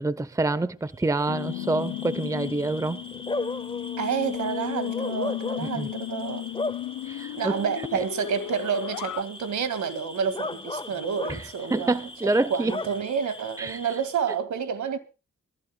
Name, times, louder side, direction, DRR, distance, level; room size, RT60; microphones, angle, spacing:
voice 1, 0.0-3.0 5.6-5.9 7.0-7.5 11.3-11.4 11.7-12.7 13.6-13.8, right 2 dB, 10° right, 0.8 m, -27 dB
Bark / Cricket, 1.0-14.3, left 2 dB, 15° left, 1.2 m, -37 dB
sound 1, 1.3-9.2, left 15 dB, 75° left, 0.6 m, -34 dB
voice 2, 4.0-6.5 7.3-12.0 12.2-15.0, right 7 dB, 70° right, 2.1 m, -29 dB
24.0 x 15.5 x 2.3 m
cardioid pair, 65°, 31 cm